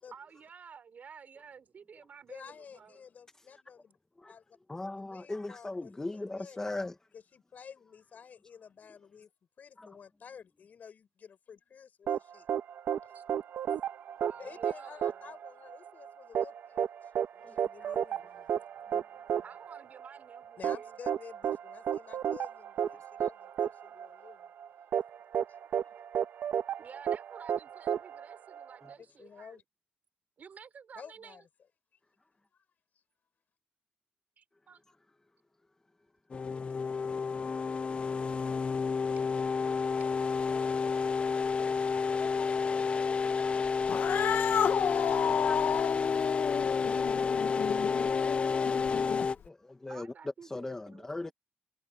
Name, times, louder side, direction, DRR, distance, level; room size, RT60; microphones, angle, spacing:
voice 1, 0.1-3.1 13.1-13.2 14.2-15.3 19.4-21.0 23.6-23.7 26.8-29.6 30.4-31.4 34.4-34.8 49.9-51.3, right 6 dB, 50° right, 4.5 m, -52 dB
voice 2, 2.3-4.0 4.3-4.4 5.0-6.6 7.1-9.3 9.6-12.5 13.0-13.1 14.4-18.6 20.6-24.5 25.5-25.9 29.2-29.6 31.0-31.4 42.1-44.7, left 7 dB, 50° left, 6.7 m, -52 dB
voice 3, 4.7-7.0 9.8-9.9 17.4-18.0 18.9-19.0 45.4-45.9 49.4-50.1 50.4-51.3, left 2 dB, 15° left, 1.4 m, -39 dB
sound 1, 12.1-28.9, right 8 dB, 75° right, 1.2 m, -33 dB
sound 2, 36.3-49.4, left 5 dB, 35° left, 0.5 m, -30 dB
Cat, 43.8-49.5, left 8 dB, 65° left, 1.0 m, -32 dB
cardioid pair, 130°, 4 cm